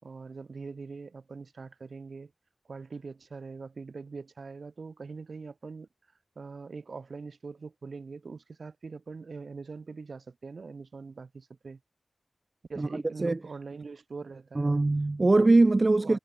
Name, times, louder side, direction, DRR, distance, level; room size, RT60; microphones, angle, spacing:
voice 1, 0.0-2.3 2.7-5.9 6.4-11.8 12.7-14.7 16.0-16.2, right 4 dB, 65° right, 3.5 m, -43 dB
voice 2, 12.8-13.4 14.6-16.2, right 2 dB, 35° right, 0.5 m, -22 dB
wide cardioid pair, 105°, 0 cm